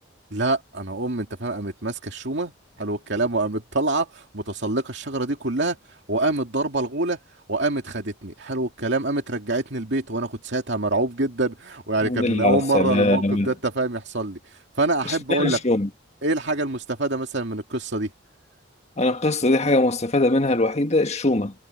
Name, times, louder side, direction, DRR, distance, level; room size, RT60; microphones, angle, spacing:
voice 1, 0.3-2.5 2.8-5.8 6.1-7.2 7.5-14.4 14.8-15.6 16.2-18.1, right 2 dB, 60° right, 2.6 m, -25 dB
voice 2, 12.0-13.5 15.0-15.9 19.0-21.5, left 2 dB, 35° left, 1.6 m, -21 dB
head